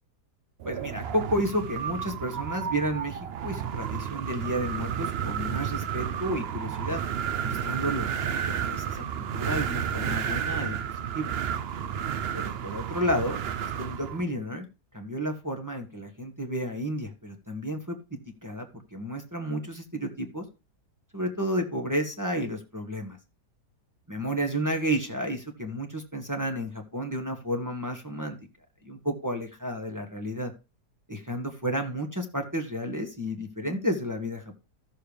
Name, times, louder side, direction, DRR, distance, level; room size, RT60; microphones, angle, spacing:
voice 1, 0.6-7.0 7.4-10.8 11.1-11.3 12.3-13.4 13.7-14.7 14.9-20.4 21.1-23.2 24.1-28.4 28.8-30.5 31.1-34.5, equal, 10° right, 3 dB, 1.4 m, -31 dB
Wind, 0.6-14.2, right 8 dB, 65° right, 0.6 m, -31 dB
14.5 x 6.7 x 3.3 m, 0.28 s
omnidirectional pair, 1.8 m